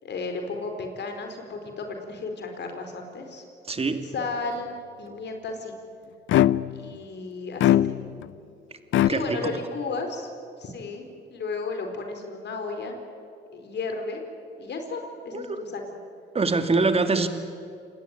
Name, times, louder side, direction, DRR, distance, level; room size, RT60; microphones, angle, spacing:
voice 1, 0.0-3.4 4.1-4.7 5.0-5.8 6.7-7.8 9.1-10.3 10.6-13.0 13.5-14.2 14.6-15.9, left 3 dB, 60° left, 5 dB, 4.8 m, -33 dB
voice 2, 3.7-4.0 9.0-9.5 15.3-15.6 16.3-17.3, right 3 dB, 30° right, 7 dB, 2.6 m, -24 dB
sound 1, 6.3-6.9 7.6-8.3 8.9-9.1, left 13 dB, 80° left, 0.6 m, -20 dB
27.5 x 18.5 x 9.3 m, 2.5 s
cardioid pair, 90°, 20 cm